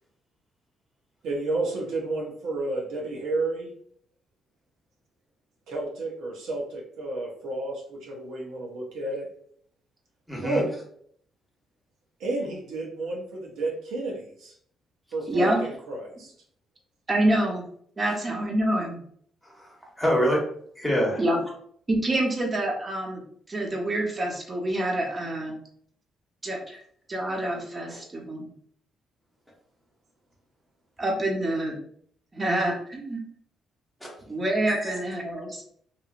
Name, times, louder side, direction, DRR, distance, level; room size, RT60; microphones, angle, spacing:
voice 1, 1.2-3.7 5.7-9.3 10.4-10.7 12.2-14.5 15.1-16.3, right 2 dB, 85° right, -1 dB, 0.8 m, -31 dB
voice 2, 10.3-10.6 19.4-20.4 20.8-21.2 26.7-26.8 27.9-28.0 34.0-34.1 34.7-35.0, equal, 5° left, -3 dB, 1.1 m, -26 dB
voice 3, 15.3-15.6 17.1-17.6 18.0-19.0 21.2-21.4 21.9-23.2 23.5-25.5 26.4-26.6 27.1-28.5 31.0-31.8 32.3-33.2 34.3-35.6, right 1 dB, 30° right, 0 dB, 0.9 m, -26 dB
2.9 x 2.6 x 2.5 m, 0.62 s
cardioid pair, 90°, 0 cm